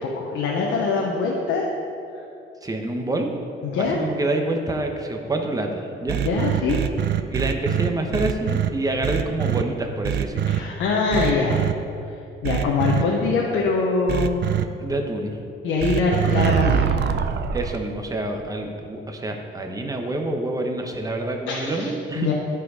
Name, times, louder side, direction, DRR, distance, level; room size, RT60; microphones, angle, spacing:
voice 1, 0.0-1.7 2.2-2.3 3.6-4.0 6.2-6.8 10.6-11.6 12.4-14.4 15.6-16.8 21.5-21.9 22.1-22.3, left 4 dB, 85° left, -2 dB, 1.0 m, -23 dB
voice 2, 2.6-3.3 3.8-6.2 7.3-10.5 14.8-15.4 17.5-22.3, right 2 dB, 20° right, 3 dB, 1.0 m, -27 dB
sound 1, 6.1-8.7 9.0-9.6 10.0-10.6 11.1-11.7 12.4-13.0 14.1-14.6 15.8-17.8, right 9 dB, 60° right, 0.5 m, -23 dB
11.0 x 4.8 x 4.9 m, 2.6 s
cardioid pair, 90°, 20 cm